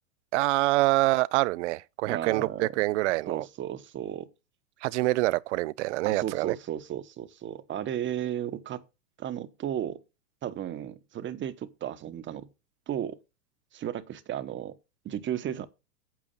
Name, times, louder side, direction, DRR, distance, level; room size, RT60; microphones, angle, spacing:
voice 1, 0.3-3.4 4.8-6.6, right 19 dB, 50° right, 0.5 m, -26 dB
voice 2, 2.1-2.8 3.3-4.3 6.0-8.8 9.2-10.0 10.4-12.5 12.9-13.2 13.7-14.8 15.0-15.7, right 10 dB, 25° right, 1.0 m, -34 dB
9.0 x 8.1 x 5.4 m
hypercardioid pair, 105°, 48 cm